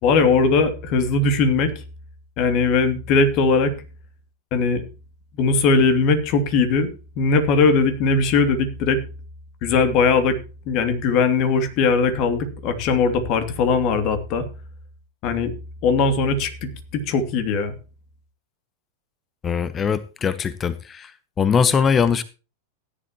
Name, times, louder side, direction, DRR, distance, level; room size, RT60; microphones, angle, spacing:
voice 1, 0.0-1.7 2.4-3.7 4.5-4.8 5.4-6.9 7.2-9.0 9.6-10.4 10.7-14.4 15.2-15.5 15.8-17.7, left 4 dB, 40° left, 2.7 m, -19 dB
voice 2, 19.4-21.1 21.4-22.2, left 6 dB, 20° left, 0.8 m, -21 dB
16.5 x 11.0 x 3.0 m
figure-of-eight pair, 90°, 0 cm